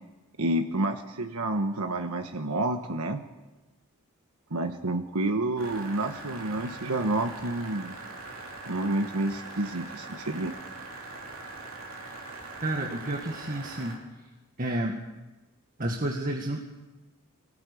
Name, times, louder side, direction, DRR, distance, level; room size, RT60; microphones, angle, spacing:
voice 1, 0.4-3.2 4.5-7.9 8.7-10.6, right 2 dB, 85° right, 5 dB, 1.3 m, -29 dB
sound 1, 5.6-14.0, right 3 dB, 60° right, 5.1 m, -42 dB
voice 2, 12.6-14.0 14.6-15.0 15.8-16.6, right 1 dB, 40° right, 1 dB, 1.8 m, -30 dB
23.5 x 19.0 x 8.5 m, 1.1 s
head